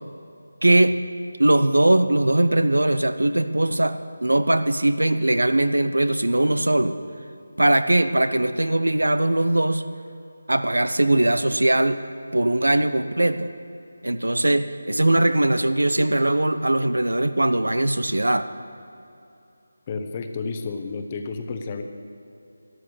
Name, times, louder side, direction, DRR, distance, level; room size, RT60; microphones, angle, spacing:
voice 1, 0.6-1.0 1.4-7.0 7.6-9.8 10.5-12.0 12.3-13.5 14.0-18.5, right 1 dB, 80° right, 11 dB, 0.8 m, -20 dB
voice 2, 19.9-21.8, left 4 dB, 25° left, 6 dB, 1.0 m, -31 dB
12.5 x 11.5 x 6.8 m, 2.7 s
figure-of-eight pair, 160°, 0 cm